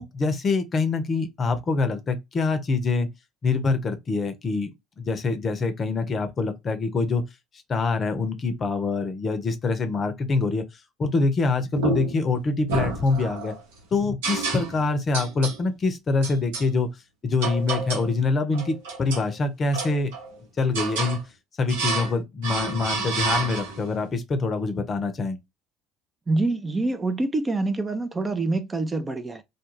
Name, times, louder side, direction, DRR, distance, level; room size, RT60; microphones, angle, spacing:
voice 1, 0.0-3.1 3.4-4.7 5.0-7.2 7.7-10.7 11.0-13.5 13.9-16.9 17.2-20.1 20.6-21.2 21.6-25.4, left 3 dB, 40° left, 0.6 m, -25 dB
sound 1, 11.7-12.3 12.7-13.6 14.2-14.9 15.1-15.6 16.2-16.7 17.4-18.1 18.5-19.3 19.7-20.3 20.7-21.2 21.7-22.2 22.4-23.9, right 3 dB, 80° right, 0.8 m, -29 dB
voice 2, 26.3-29.4, right 2 dB, 25° right, 0.5 m, -26 dB
2.3 x 2.2 x 3.0 m
hypercardioid pair, 70°, 0 cm